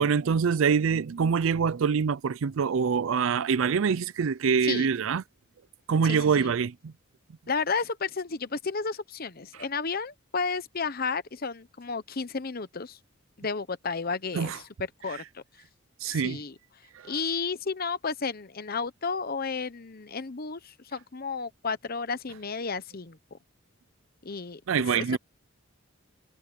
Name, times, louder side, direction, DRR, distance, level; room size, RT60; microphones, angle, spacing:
voice 1, 0.0-5.2 5.9-6.9 14.3-14.6 16.0-16.4 24.7-25.2, right 6 dB, 70° right, 0.4 m, -25 dB
voice 2, 6.0-6.5 7.5-13.0 13.4-14.6 15.0-15.4 16.1-16.6 17.0-23.4 24.2-24.6 25.0-25.2, left 4 dB, 45° left, 0.9 m, -32 dB
head